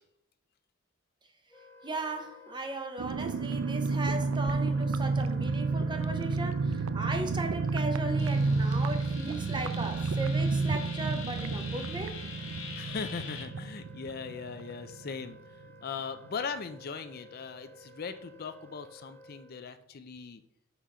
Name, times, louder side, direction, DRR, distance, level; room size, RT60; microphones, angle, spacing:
Wind instrument woodwind instrument, 1.5-19.7, left 1 dB, 10° left, 1.3 m, -54 dB
voice 1, 1.8-12.1, right 2 dB, 20° right, 5 dB, 0.9 m, -37 dB
sound 1, 3.0-15.3 15.6-15.7 16.0-16.3, right 3 dB, 75° right, 0.4 m, -30 dB
sound 2, 8.2-13.4, left 5 dB, 75° left, 1.9 m, -45 dB
voice 2, 12.7-20.4, left 5 dB, 45° left, 9 dB, 0.5 m, -39 dB
5.7 x 5.6 x 4.9 m, 0.84 s
head